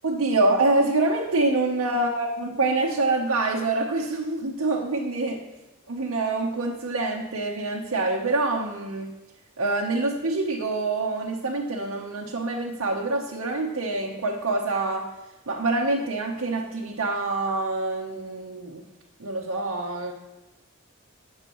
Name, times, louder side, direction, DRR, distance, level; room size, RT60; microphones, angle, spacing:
voice 1, 0.0-5.4 5.9-9.1 9.6-15.1 15.5-18.8 19.2-20.1, right 2 dB, 85° right, -1 dB, 0.9 m, -26 dB
15.0 x 6.6 x 3.0 m, 1.1 s
head